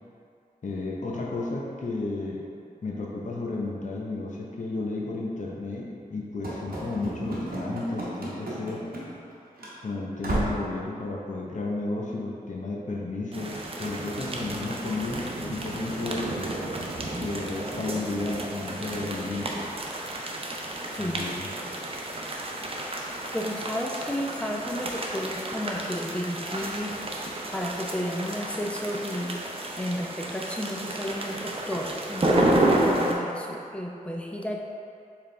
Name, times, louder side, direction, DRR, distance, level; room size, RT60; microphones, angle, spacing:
voice 1, 0.6-2.5 2.8-8.8 9.8-16.3 17.0-19.7 21.0-21.5, left 3 dB, 55° left, -3 dB, 0.7 m, -33 dB
Run / Slam, 6.4-9.3 9.6-9.7 10.2-10.7, right 1 dB, 80° right, 0.9 m, -33 dB
sound 1, 13.3-33.1, right 1 dB, 40° right, 0.6 m, -31 dB
voice 2, 23.3-26.9 27.5-29.4 29.8-34.6, equal, 5° left, -1 dB, 0.6 m, -32 dB
4.7 x 3.5 x 3.2 m, 2.5 s
wide cardioid pair, 60°, 15 cm